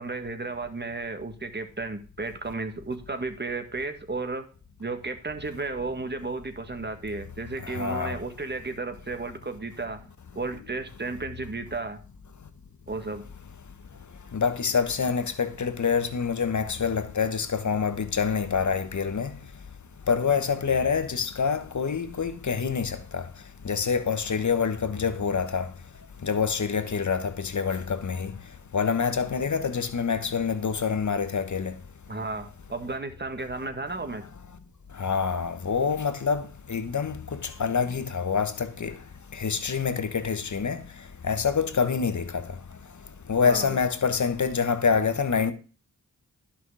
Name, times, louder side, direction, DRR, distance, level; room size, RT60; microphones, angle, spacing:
voice 1, 0.0-4.5 4.8-10.0 10.3-12.0 12.9-13.2 32.1-34.2 43.4-43.8, right 3 dB, 30° right, 1.7 m, -33 dB
voice 2, 7.6-8.2 14.3-19.3 20.1-23.3 23.6-25.7 26.2-28.3 28.7-31.7 35.0-38.9 39.3-40.8 41.2-42.4 43.3-45.5, left 6 dB, 55° left, 1.3 m, -26 dB
11.0 x 5.9 x 4.8 m
cardioid pair, 50°, 36 cm